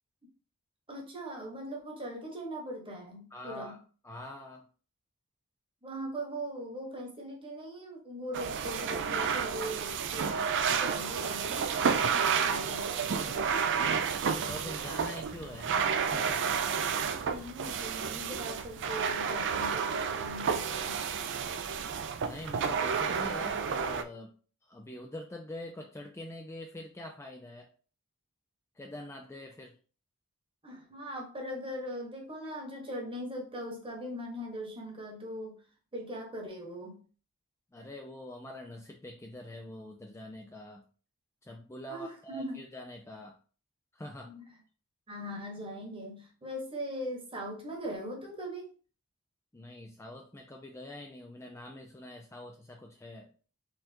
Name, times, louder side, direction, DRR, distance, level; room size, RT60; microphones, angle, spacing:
voice 1, 0.9-3.8 5.8-10.3 10.7-14.1 17.1-21.1 30.6-35.6 35.9-37.0 41.9-42.6 44.2-44.4 45.1-48.7, equal, 25° right, 0 dB, 1.3 m, -40 dB
voice 2, 3.3-3.8 4.0-4.6 14.5-16.6 22.2-24.3 24.6-27.7 28.8-29.8 37.7-40.8 41.4-43.4 43.9-44.3 49.5-53.3, left 1 dB, 10° left, 2 dB, 0.4 m, -44 dB
sound 1, 8.3-24.0, right 6 dB, 55° right, 0.4 m, -31 dB
4.2 x 3.9 x 2.8 m, 0.39 s
head